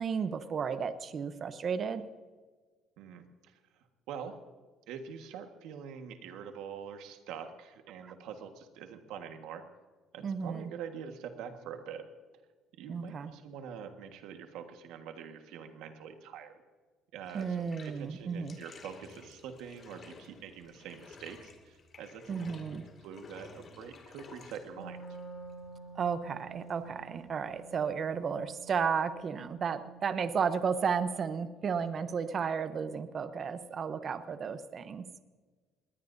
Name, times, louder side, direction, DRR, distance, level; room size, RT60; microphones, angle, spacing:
voice 1, 0.0-2.1 8.0-8.1 10.2-10.7 12.9-13.3 17.3-18.6 22.3-22.8 25.9-35.1, right 6 dB, 40° right, 11 dB, 0.8 m, -33 dB
voice 2, 3.0-3.6 4.1-4.4 4.9-9.6 10.1-12.0 12.8-16.6 17.1-25.0 31.8-31.9, right 7 dB, 80° right, 6 dB, 1.5 m, -45 dB
Bathtub (filling or washing), 17.2-28.9, left 4 dB, 40° left, 2.3 m, -54 dB
Wind instrument woodwind instrument, 24.6-30.3, right 4 dB, 15° left, 3.2 m, -50 dB
20.5 x 19.0 x 2.7 m, 1.4 s
cardioid pair, 125°, 0 cm